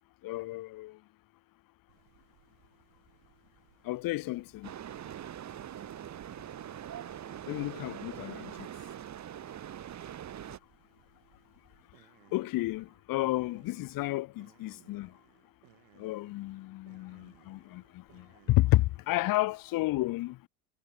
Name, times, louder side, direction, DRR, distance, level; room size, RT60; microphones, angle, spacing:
voice 1, 0.2-1.0 3.8-4.7 7.5-8.7 12.3-15.1 16.0-20.4, left 18 dB, 50° left, 0.6 m, -31 dB
sound 1, 1.9-19.3, right 40 dB or more, 75° right, 7.7 m, -65 dB
sound 2, 4.6-10.6, right 10 dB, 40° right, 1.2 m, -43 dB
hypercardioid pair, 70°, 45 cm